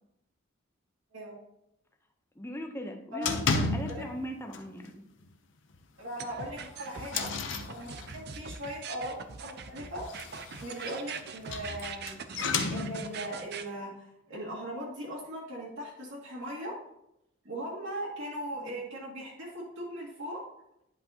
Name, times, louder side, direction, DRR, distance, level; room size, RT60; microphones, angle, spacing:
voice 1, 2.4-5.1 18.6-18.7, equal, 10° left, 4 dB, 0.7 m, -39 dB
sound 1, 3.2-4.2 4.5-4.9 5.2-5.3 5.7-5.8 6.4-8.4 9.9-13.3, left 4 dB, 60° left, 0.7 m, -33 dB
voice 2, 6.0-7.3 7.7-10.1 10.6-12.2 12.7-16.7 17.4-20.4, right 1 dB, 65° right, -8 dB, 2.2 m, -39 dB
sound 2, 6.2-13.6, right 6 dB, 50° right, 0.5 m, -42 dB
10.5 x 5.3 x 2.8 m, 0.81 s
head